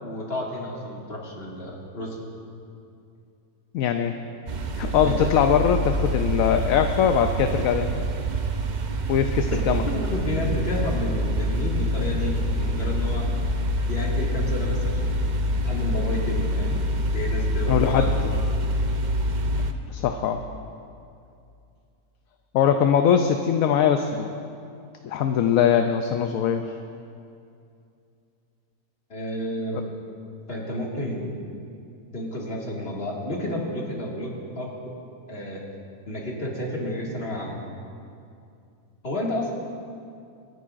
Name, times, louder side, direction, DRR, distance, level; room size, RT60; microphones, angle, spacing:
voice 1, 0.0-2.2 5.0-5.3 9.5-9.6 9.9-13.3 13.9-15.2 15.6-16.8 17.1-18.4 29.1-29.9 30.5-31.3 32.1-34.9 35.3-35.6 36.1-37.6 39.0-39.5, left 1 dB, 40° left, -3 dB, 2.2 m, -31 dB
voice 2, 3.7-4.2 4.7-8.1 9.1-9.8 17.7-18.1 19.9-20.5 22.5-24.3 25.0-26.7, left 8 dB, 70° left, 6 dB, 0.9 m, -21 dB
sound 1, 4.5-19.7, equal, 55° right, 0.5 m, -26 dB
26.5 x 10.5 x 2.5 m, 2.5 s
omnidirectional pair, 1.6 m